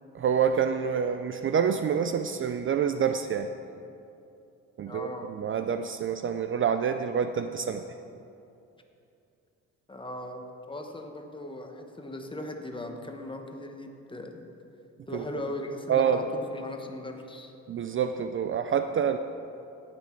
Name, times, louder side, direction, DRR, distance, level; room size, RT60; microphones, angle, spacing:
voice 1, 0.1-3.5 4.8-7.8 15.1-15.2 15.9-16.2 17.7-19.2, right 7 dB, 45° right, 8 dB, 0.4 m, -27 dB
voice 2, 4.9-5.3 9.9-14.4 15.1-17.5, left 1 dB, 15° left, 4 dB, 1.1 m, -38 dB
17.0 x 6.2 x 4.5 m, 2.7 s
cardioid pair, 90°, 30 cm